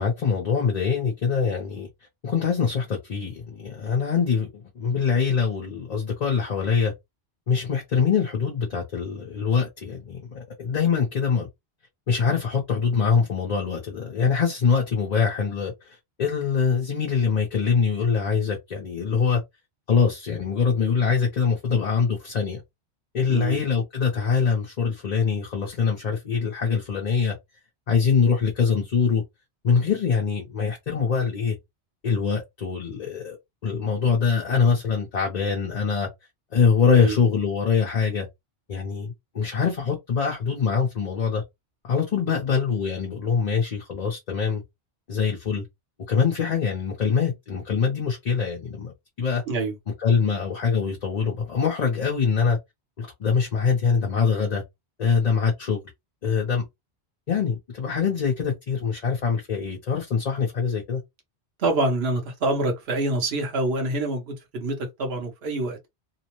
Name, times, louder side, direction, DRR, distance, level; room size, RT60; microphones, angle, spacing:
voice 1, 0.0-1.9 2.2-6.9 7.5-11.5 12.1-19.4 19.9-22.6 23.1-27.3 27.9-29.2 29.6-31.6 32.0-33.4 33.6-36.1 36.5-38.3 38.7-41.4 41.8-44.6 45.1-45.6 46.1-48.9 49.2-49.4 50.0-52.6 53.0-54.6 55.0-55.8 56.2-56.7 57.3-61.0, left 6 dB, 45° left, 0.7 m, -24 dB
voice 2, 23.3-23.6 36.9-37.2 49.5-49.7 61.6-65.8, right 2 dB, 70° right, 1.2 m, -26 dB
2.9 x 2.0 x 2.9 m
omnidirectional pair, 1.1 m